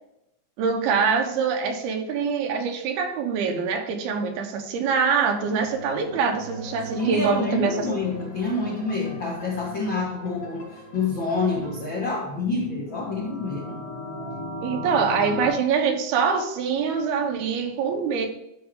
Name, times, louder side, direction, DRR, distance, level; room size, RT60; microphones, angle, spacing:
voice 1, 0.6-7.9 14.6-18.3, right 5 dB, 80° right, 4 dB, 3.1 m, -24 dB
sound 1, 5.2-14.2 14.6-14.7, right 3 dB, 50° right, 3.0 m, -43 dB
sound 2, 6.5-12.0, left 2 dB, 50° left, 2.6 m, -44 dB
voice 2, 6.9-13.8, left 3 dB, 65° left, -3 dB, 1.2 m, -27 dB
sound 3, 12.9-15.5, left 1 dB, 15° right, 2.2 m, -35 dB
12.0 x 5.3 x 3.7 m, 0.86 s
omnidirectional pair, 4.5 m